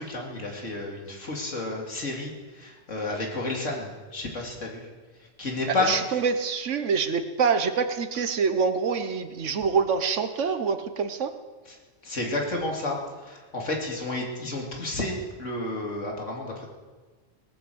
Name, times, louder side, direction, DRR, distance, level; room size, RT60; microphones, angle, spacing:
voice 1, 0.0-4.9 5.4-6.2 11.7-11.8 12.0-13.0 13.2-16.7, left 2 dB, 70° left, -1 dB, 2.9 m, -31 dB
voice 2, 5.8-11.3, right 5 dB, 70° right, 9 dB, 1.3 m, -25 dB
18.5 x 8.0 x 7.8 m, 1.4 s
omnidirectional pair, 1.3 m